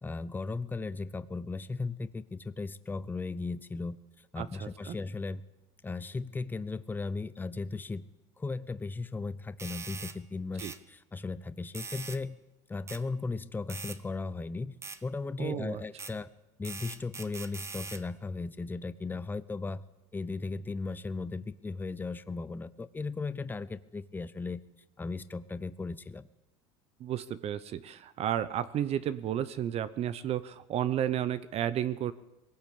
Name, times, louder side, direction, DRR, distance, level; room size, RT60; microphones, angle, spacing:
voice 1, 0.0-5.4 5.8-8.1 8.4-12.4 12.7-14.7 15.0-16.3 16.6-19.8 20.1-24.6 25.0-26.3, left 3 dB, 15° left, 14 dB, 0.9 m, -36 dB
voice 2, 4.4-5.0 10.6-10.7 15.4-15.8 27.0-32.1, right 10 dB, 45° right, 15 dB, 0.9 m, -32 dB
sound 1, 9.6-10.2 10.6-10.8 11.7-12.2 12.9-13.0 13.7-14.0 14.8-15.0 16.0-16.1 16.6-18.0, right 4 dB, 20° right, 1.2 m, -42 dB
21.5 x 17.5 x 8.6 m, 0.98 s
cardioid pair, 125°, 15 cm